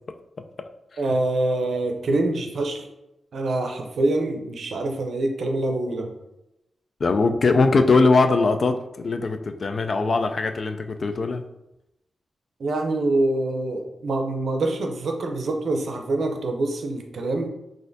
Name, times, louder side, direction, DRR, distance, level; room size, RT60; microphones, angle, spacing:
voice 1, 1.0-2.8 3.3-6.1 12.6-17.5, right 2 dB, 70° right, 3 dB, 0.5 m, -25 dB
voice 2, 7.0-11.4, left 3 dB, 60° left, 7 dB, 0.3 m, -21 dB
4.0 x 2.5 x 2.6 m, 0.91 s
cardioid pair, 50°, 0 cm